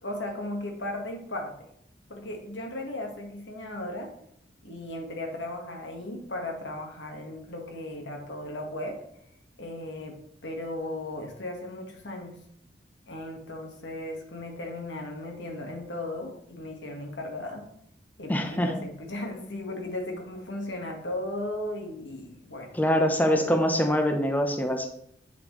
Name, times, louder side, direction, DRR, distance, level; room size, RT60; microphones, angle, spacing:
voice 1, 0.0-1.5 2.1-4.1 4.6-9.0 9.6-12.4 13.1-17.7 18.2-22.7 23.2-23.4, left 1 dB, 80° left, 2 dB, 1.6 m, -36 dB
voice 2, 18.3-18.8 22.7-24.9, equal, 10° left, 4 dB, 0.8 m, -24 dB
8.3 x 6.9 x 3.2 m, 0.71 s
head